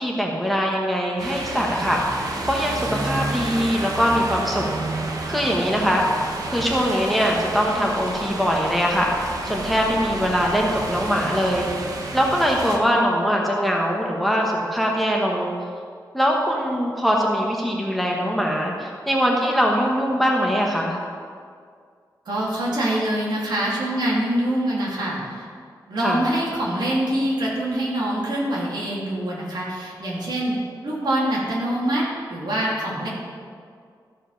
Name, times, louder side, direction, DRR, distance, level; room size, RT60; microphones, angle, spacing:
voice 1, 0.0-4.7 5.3-6.0 6.5-11.7 12.1-15.5 16.1-21.0 26.0-26.2, equal, ahead, -1 dB, 1.0 m, -22 dB
sound 1, 1.2-12.8, right 2 dB, 50° right, 1.1 m, -30 dB
voice 2, 22.3-25.4 25.9-30.5 30.8-33.1, right 1 dB, 70° right, -5 dB, 2.8 m, -24 dB
13.5 x 5.0 x 5.6 m, 2.1 s
wide cardioid pair, 165°, 8 cm